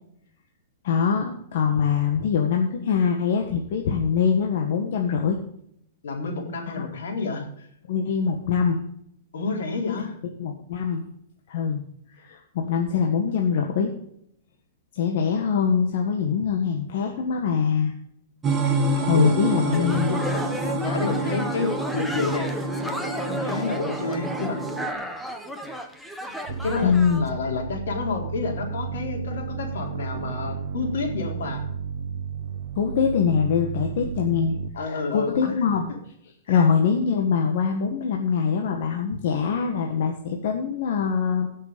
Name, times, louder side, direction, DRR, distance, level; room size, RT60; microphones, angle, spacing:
voice 1, 0.8-5.4 6.7-6.8 7.9-8.8 9.9-10.0 10.4-11.1 11.5-11.8 12.1-13.9 14.9-17.9 19.0-20.1 26.8-27.3 32.7-34.6 34.9-35.9 36.5-41.5, left 6 dB, 60° left, 2 dB, 1.6 m, -23 dB
voice 2, 6.0-7.7 9.3-10.1 18.6-22.5 23.3-24.6 26.6-31.6 34.7-35.5 36.5-36.6, left 4 dB, 80° left, 1 dB, 4.0 m, -30 dB
sound 1, 18.4-24.9, right 2 dB, 15° right, 2.0 m, -27 dB
sound 2, 19.7-27.3, equal, 5° left, 1.1 m, -33 dB
sound 3, 26.5-34.7, right 6 dB, 65° right, 0.9 m, -33 dB
16.0 x 6.6 x 5.2 m, 0.72 s
hypercardioid pair, 150°, 0 cm